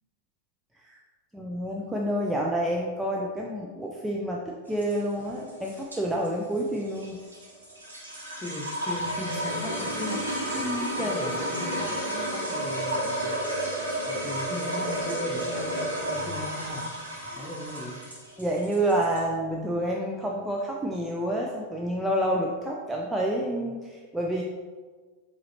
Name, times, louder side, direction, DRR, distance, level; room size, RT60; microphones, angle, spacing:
voice 1, 1.3-7.2 10.5-11.1 17.2-17.5 18.4-24.4, right 1 dB, 5° right, -2 dB, 0.4 m, -29 dB
sound 1, 4.7-19.2, equal, 80° right, 1.3 m, -32 dB
voice 2, 8.4-10.3 11.0-13.3 13.9-16.9 17.4-18.0, left 1 dB, 15° left, -1 dB, 0.8 m, -37 dB
4.8 x 3.0 x 2.8 m, 1.5 s
figure-of-eight pair, 90°, 0 cm